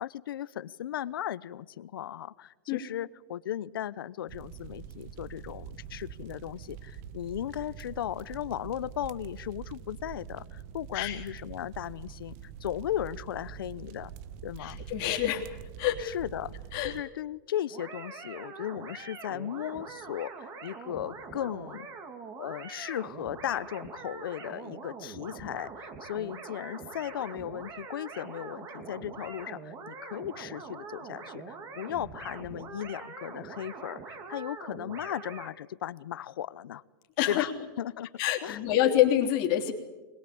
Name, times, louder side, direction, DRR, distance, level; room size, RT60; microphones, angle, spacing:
voice 1, 0.0-14.1 14.4-14.8 16.0-16.5 16.8-21.9 22.4-36.8 37.3-37.5 37.8-38.1 38.4-38.6, left 11 dB, 85° left, 18 dB, 0.8 m, -36 dB
sound 1, 4.3-17.0, right 9 dB, 45° right, 1.0 m, -45 dB
voice 2, 14.6-15.4 15.8-16.1 16.7-16.9 37.2-37.5 38.2-39.7, left 12 dB, 40° left, 2 dB, 3.2 m, -26 dB
sound 2, 17.7-35.5, right 4 dB, 25° right, 2.6 m, -44 dB
22.5 x 21.5 x 8.7 m, 1.2 s
supercardioid pair, 150°, 12 cm